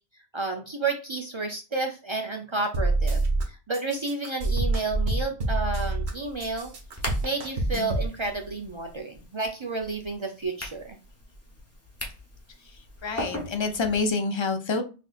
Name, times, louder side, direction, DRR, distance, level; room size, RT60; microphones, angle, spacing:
voice 1, 0.3-6.7 7.2-11.0, right 3 dB, 50° right, 3 dB, 0.3 m, -31 dB
sound 1, 2.7-3.4 3.7-6.1 6.4-8.1, right 2 dB, 70° right, 1.2 m, -26 dB
sound 2, 6.0-14.1, left 1 dB, 15° left, 0.8 m, -41 dB
voice 2, 13.0-14.8, left 4 dB, 35° left, 5 dB, 0.4 m, -27 dB
5.9 x 2.6 x 2.4 m, 0.33 s
omnidirectional pair, 1.2 m